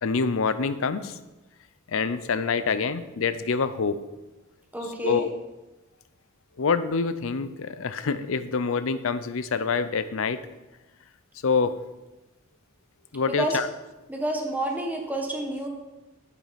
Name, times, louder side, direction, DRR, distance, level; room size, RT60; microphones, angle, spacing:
voice 1, 0.0-1.2 1.9-4.0 5.0-5.3 6.6-10.4 11.4-11.7 13.1-13.7, left 5 dB, 70° left, 13 dB, 0.6 m, -26 dB
voice 2, 4.7-5.3 13.2-13.6 14.1-15.7, right 1 dB, 10° right, 1 dB, 1.3 m, -29 dB
10.5 x 7.4 x 4.1 m, 1.1 s
head